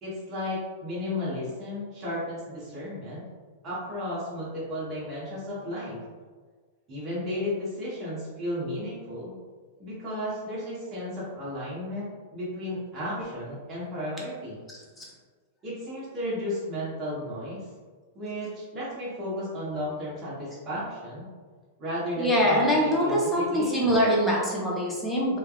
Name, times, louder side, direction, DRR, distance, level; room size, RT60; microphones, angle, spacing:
voice 1, 0.0-3.2 3.6-6.0 6.9-9.3 9.8-14.6 15.6-17.6 18.1-21.2 21.8-23.9, left 1 dB, 20° right, -9 dB, 0.9 m, -34 dB
voice 2, 14.7-15.0 22.2-25.4, equal, 10° left, -5 dB, 0.6 m, -24 dB
3.2 x 2.2 x 2.3 m, 1.5 s
supercardioid pair, 155°, 0 cm